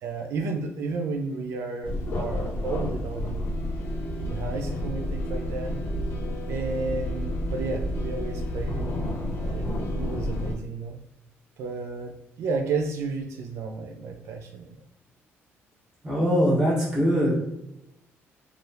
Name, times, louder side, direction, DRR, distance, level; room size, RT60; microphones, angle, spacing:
voice 1, 0.0-3.5 4.2-5.8 6.5-8.9 9.4-11.0 11.6-14.8, right 4 dB, 75° right, 3 dB, 0.4 m, -32 dB
sound 1, 1.8-10.5, left 1 dB, 55° left, 0.7 m, -30 dB
voice 2, 16.0-17.3, equal, 10° right, -6 dB, 1.3 m, -22 dB
3.3 x 2.4 x 2.7 m, 0.85 s
cardioid pair, 150°, 5 cm